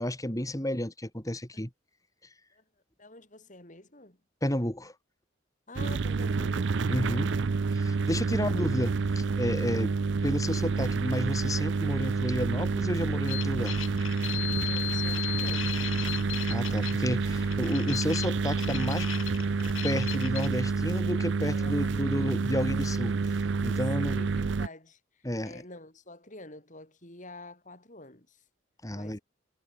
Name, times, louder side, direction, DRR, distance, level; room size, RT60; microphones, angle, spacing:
voice 1, 0.0-1.7 4.4-4.9 6.9-7.3 7.8-8.9 9.4-10.0 10.2-13.8 16.5-19.1 19.8-23.3 23.6-24.2 25.2-25.5 28.8-29.2, left 1 dB, 15° left, 4.1 m, -31 dB
voice 2, 3.0-4.2 5.7-7.6 8.3-9.0 9.6-9.7 14.1-14.2 14.6-15.8 21.5-21.9 22.3-22.4 23.6-28.5 28.9-29.2, left 2 dB, 40° left, 6.3 m, -48 dB
sound 1, 5.8-24.7, right 4 dB, 65° right, 0.5 m, -28 dB
sound 2, 13.3-20.5, left 12 dB, 90° left, 1.2 m, -37 dB
head